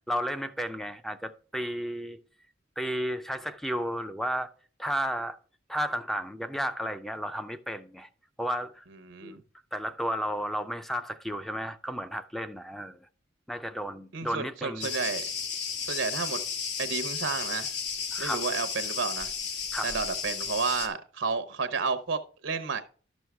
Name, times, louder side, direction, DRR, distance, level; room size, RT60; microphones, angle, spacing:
voice 1, 0.1-2.2 2.8-4.5 4.8-5.4 5.7-8.1 8.4-8.8 9.2-9.4 9.7-13.1 13.5-14.9 18.1-18.4 19.7-19.9, equal, ahead, 0.5 m, -33 dB
voice 2, 9.0-9.4 14.1-15.2 15.9-16.4 16.8-17.7 18.2-19.3 19.8-22.8, right 4 dB, 80° right, 0.8 m, -31 dB
Cricket, 14.8-20.9, left 6 dB, 60° left, 1.3 m, -33 dB
12.0 x 6.2 x 3.4 m
head